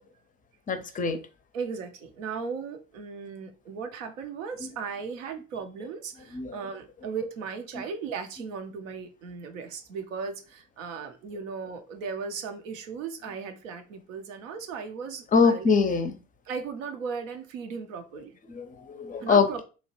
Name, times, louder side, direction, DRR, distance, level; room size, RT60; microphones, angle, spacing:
voice 1, 0.7-1.2 6.3-6.6 15.3-16.2 18.5-19.6, left 5 dB, 20° left, 0.4 m, -23 dB
voice 2, 1.5-15.8 16.4-18.4 19.2-19.6, right 5 dB, 85° right, 0.6 m, -37 dB
2.9 x 2.1 x 2.8 m
hypercardioid pair, 60°, 38 cm